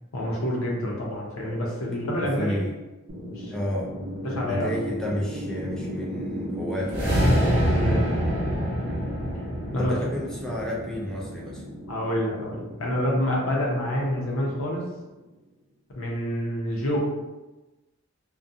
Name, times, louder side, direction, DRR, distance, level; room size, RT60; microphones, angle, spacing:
voice 1, 0.1-2.6 3.3-3.6 4.2-4.7 7.7-8.1 9.7-10.0 11.9-14.8 15.9-17.0, equal, 80° left, -3 dB, 0.7 m, -27 dB
voice 2, 2.2-2.8 3.5-3.9 4.5-7.2 9.8-11.6, left 1 dB, 5° left, -5 dB, 0.3 m, -31 dB
sound 1, 3.1-15.2, equal, 80° right, 0.5 m, -36 dB
sound 2, 6.8-11.2, equal, 25° right, 0.9 m, -25 dB
2.3 x 2.2 x 2.6 m, 1.1 s
head